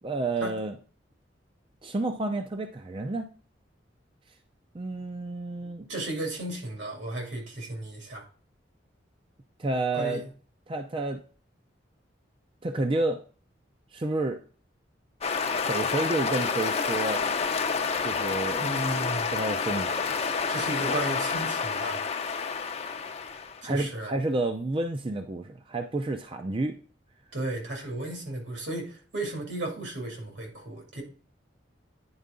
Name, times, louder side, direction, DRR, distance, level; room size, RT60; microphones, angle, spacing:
voice 1, 0.0-0.7 1.8-3.3 4.7-5.9 9.6-10.2 10.7-11.2 12.6-13.2 13.9-14.4 15.7-17.2 18.0-18.7 19.3-19.9 23.6-26.8, right 2 dB, 30° right, 0.5 m, -30 dB
voice 2, 5.9-8.2 9.9-10.3 18.6-19.3 20.5-22.0 23.6-24.1 27.3-31.0, right 2 dB, 70° right, 2.6 m, -34 dB
sound 1, 15.2-23.6, left 5 dB, 35° left, 0.6 m, -29 dB
9.6 x 4.6 x 3.7 m
head